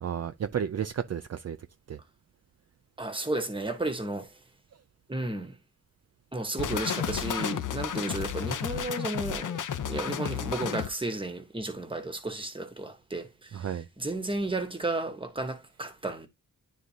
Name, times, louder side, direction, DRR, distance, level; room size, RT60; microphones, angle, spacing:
voice 1, 0.0-1.6 1.9-2.0 13.5-13.9, right 8 dB, 50° right, 0.5 m, -32 dB
voice 2, 3.0-4.4 5.1-5.6 6.3-13.7 14.0-16.3, right 2 dB, 15° right, 1.1 m, -33 dB
sound 1, 6.6-10.9, left 9 dB, 65° left, 0.7 m, -32 dB
11.0 x 3.7 x 2.8 m
wide cardioid pair, 175°, 34 cm